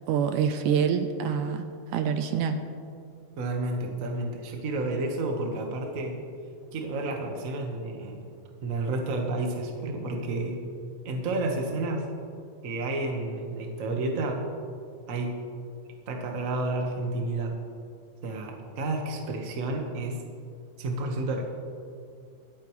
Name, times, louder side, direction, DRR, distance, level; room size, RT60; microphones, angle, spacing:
voice 1, 0.1-2.6, right 7 dB, 75° right, 7 dB, 2.1 m, -26 dB
voice 2, 3.4-6.2 6.7-8.2 8.6-10.6 11.0-12.0 12.6-14.4 15.1-15.3 16.1-17.6 18.2-20.2 20.8-21.4, right 2 dB, 50° right, 2 dB, 1.0 m, -30 dB
25.0 x 8.5 x 3.2 m, 2.3 s
omnidirectional pair, 3.7 m